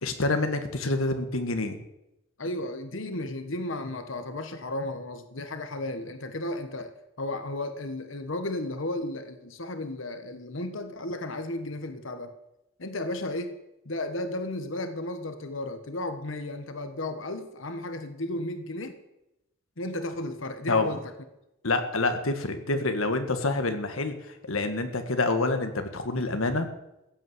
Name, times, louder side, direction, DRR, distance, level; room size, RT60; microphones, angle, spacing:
voice 1, 0.0-1.8 20.7-20.9 21.6-24.1 24.4-26.7, left 2 dB, 85° left, 7 dB, 1.7 m, -27 dB
voice 2, 2.4-12.3 12.8-13.5 13.8-19.0 19.8-21.1, left 1 dB, 65° left, 8 dB, 1.4 m, -34 dB
15.5 x 8.6 x 7.9 m, 0.89 s
head